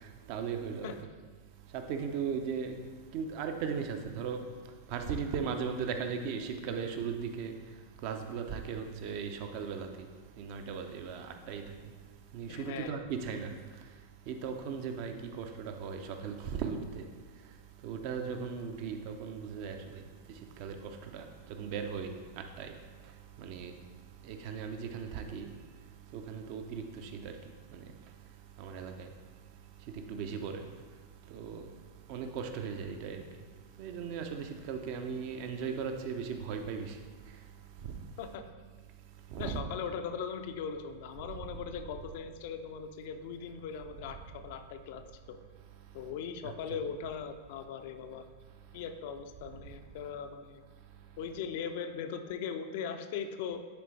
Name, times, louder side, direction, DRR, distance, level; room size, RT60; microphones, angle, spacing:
voice 1, 0.3-0.9 1.7-2.7 3.1-4.4 4.9-7.5 8.0-9.9 10.4-11.6 12.3-13.5 14.3-17.0 17.8-20.0 20.6-21.2 21.6-22.1 22.6-22.7 23.4-23.7 24.3-25.5 26.1-27.3 27.7-27.8 28.6-29.1 30.1-30.6 31.3-31.6 32.1-33.2 33.8-37.0 39.3-39.7 46.4-46.5, right 6 dB, 45° right, 6 dB, 0.6 m, -37 dB
voice 2, 12.5-13.0 38.2-38.4 39.4-45.4 45.9-48.3 48.7-50.6 51.2-53.6, left 7 dB, 50° left, 7 dB, 0.5 m, -39 dB
10.0 x 4.0 x 3.2 m, 1.5 s
figure-of-eight pair, 90°, 0 cm